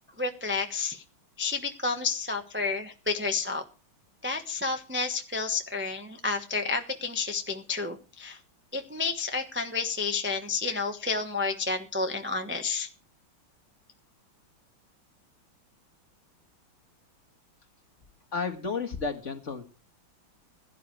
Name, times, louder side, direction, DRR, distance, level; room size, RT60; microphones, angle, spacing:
voice 1, 0.2-1.0 1.4-3.6 4.2-8.4 8.7-12.9, left 4 dB, 10° right, 4 dB, 0.6 m, -30 dB
voice 2, 18.3-19.6, left 5 dB, 35° left, 6 dB, 1.9 m, -32 dB
16.5 x 10.0 x 4.6 m, 0.33 s
omnidirectional pair, 2.3 m